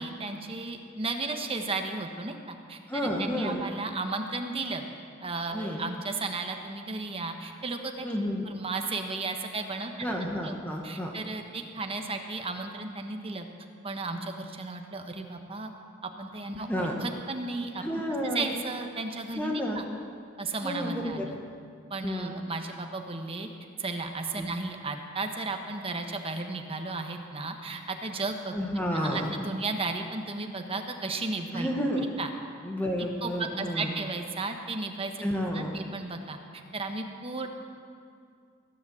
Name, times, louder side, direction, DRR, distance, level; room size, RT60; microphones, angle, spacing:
voice 1, 0.0-4.8 5.2-8.1 8.4-9.9 10.4-10.5 10.8-13.4 13.8-15.7 16.0-17.8 18.2-19.8 20.4-21.4 21.9-23.5 23.8-28.5 28.9-31.7 32.0-32.3 33.0-35.2 35.5-36.4 36.7-37.5, right 3 dB, 30° right, 4 dB, 1.2 m, -34 dB
voice 2, 2.9-3.6 5.5-5.8 8.0-8.4 10.0-11.1 16.7-17.0 17.8-18.6 19.3-19.8 20.6-21.3 22.0-22.3 24.4-24.5 28.5-29.3 31.5-32.1 32.6-33.9 35.2-35.8, equal, 10° left, 0 dB, 1.4 m, -30 dB
17.0 x 10.5 x 7.7 m, 2.3 s
head